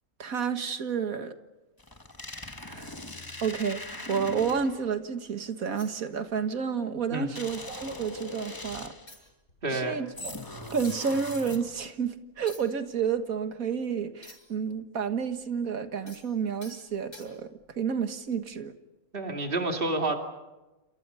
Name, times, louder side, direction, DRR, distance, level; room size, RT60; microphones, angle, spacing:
voice 1, 0.2-1.3 2.7-2.9 3.4-8.9 9.7-10.3 10.7-18.7, right 6 dB, 75° right, 2.0 m, -30 dB
sound 1, 1.8-4.9 7.4-9.2 10.2-11.9, left 2 dB, 15° left, 1.3 m, -41 dB
sound 2, 4.8-5.0 5.7-6.6 6.9-7.1 7.4-8.3 8.7-8.8 9.1-14.7 15.0-17.7 18.3-18.5, left 1 dB, 65° left, 7.6 m, -54 dB
voice 2, 9.6-10.0 19.1-20.2, right 2 dB, 40° right, 2.7 m, -29 dB
29.0 x 28.0 x 5.6 m
omnidirectional pair, 1.5 m